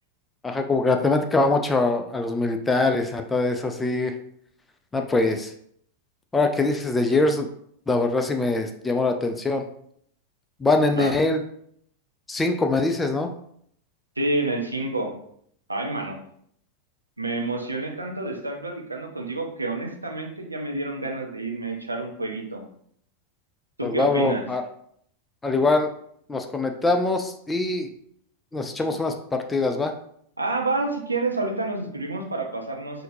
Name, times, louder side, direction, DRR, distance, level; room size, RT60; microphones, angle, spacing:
voice 1, 0.4-4.1 4.9-5.5 6.3-7.5 7.9-9.7 10.6-11.4 12.3-13.3 23.8-24.6 25.4-25.9 26.3-27.9 28.5-29.9, left 3 dB, 10° left, 5 dB, 0.4 m, -23 dB
voice 2, 14.2-15.1 15.7-16.2 17.2-22.6 23.8-24.4 30.4-33.0, right 2 dB, 80° right, 2 dB, 0.7 m, -28 dB
5.6 x 2.7 x 2.6 m, 0.67 s
figure-of-eight pair, 90°, 0 cm